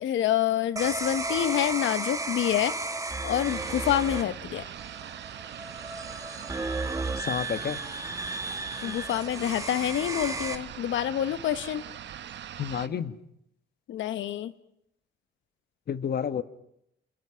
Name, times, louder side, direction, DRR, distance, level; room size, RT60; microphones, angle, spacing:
voice 1, 0.0-2.7 3.2-4.6 8.8-11.8 13.9-14.5, left 11 dB, 75° left, 13 dB, 1.1 m, -27 dB
sound 1, 0.8-10.6, right 3 dB, 15° right, 1.9 m, -34 dB
sound 2, 3.4-12.9, right 10 dB, 65° right, 1.2 m, -42 dB
voice 2, 7.2-7.8 12.6-13.2 15.9-16.4, left 8 dB, 55° left, 12 dB, 1.4 m, -30 dB
28.5 x 28.0 x 5.9 m, 0.79 s
cardioid pair, 90°, 20 cm